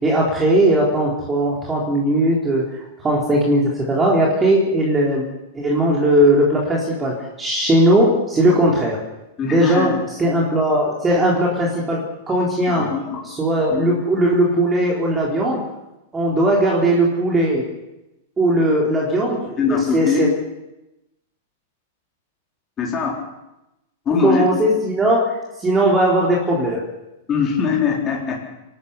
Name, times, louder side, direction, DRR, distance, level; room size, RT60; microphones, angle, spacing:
voice 1, 0.0-2.6 3.0-5.2 5.5-9.0 9.4-9.9 10.2-12.9 13.2-15.6 16.1-17.7 18.4-20.3 24.2-26.8, right 1 dB, 15° right, -3 dB, 3.8 m, -18 dB
voice 2, 9.4-10.0 12.7-13.2 13.7-13.9 19.6-20.2 22.8-23.2 24.1-24.7 27.3-28.4, left 6 dB, 20° left, -1 dB, 3.9 m, -22 dB
26.5 x 12.5 x 8.3 m, 0.96 s
supercardioid pair, 150°, 0 cm